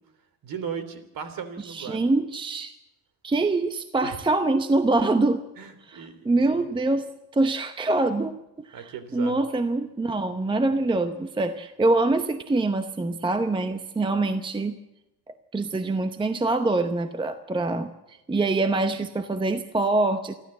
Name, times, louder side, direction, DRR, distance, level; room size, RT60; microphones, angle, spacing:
voice 1, 0.4-2.1 4.0-4.2 5.6-6.2 6.5-6.7 8.7-9.4, right 7 dB, 45° right, 12 dB, 3.2 m, -37 dB
voice 2, 1.6-2.7 3.2-5.4 5.9-7.1 7.3-8.4 8.7-14.8 15.3-20.3, right 2 dB, 10° right, 9 dB, 0.8 m, -25 dB
27.5 x 12.5 x 7.9 m, 0.92 s
cardioid pair, 125°, 47 cm